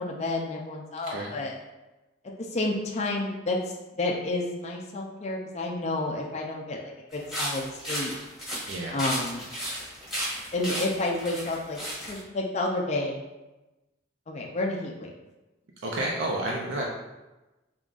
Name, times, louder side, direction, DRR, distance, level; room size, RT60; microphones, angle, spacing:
voice 1, 0.0-1.5 2.2-6.8 7.1-8.1 8.9-9.5 10.5-11.8 12.1-13.2 14.3-15.1, left 2 dB, 35° left, -1 dB, 0.4 m, -30 dB
voice 2, 1.0-1.3 8.7-9.1 15.8-16.8, right 1 dB, 70° right, -1 dB, 0.5 m, -30 dB
sound 1, 7.1-12.2, equal, ahead, 1.2 m, -34 dB
3.8 x 3.6 x 2.4 m, 1.1 s
head